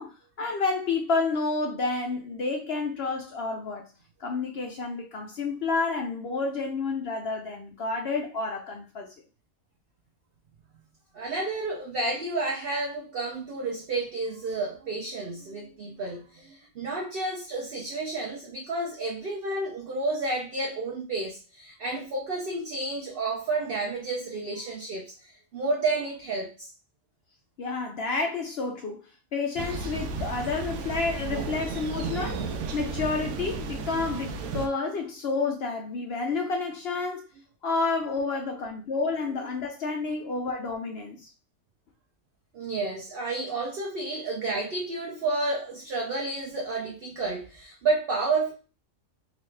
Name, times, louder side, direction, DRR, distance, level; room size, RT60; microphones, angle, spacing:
voice 1, 0.0-3.8 4.2-9.1 27.6-37.2 37.6-41.3, left 3 dB, 65° left, 0.6 m, -30 dB
voice 2, 11.1-26.7 42.5-48.5, right 3 dB, 50° right, 0.8 m, -31 dB
Thunder, 29.6-34.7, right 4 dB, 90° right, 1.0 m, -33 dB
3.9 x 2.4 x 3.2 m
omnidirectional pair, 1.5 m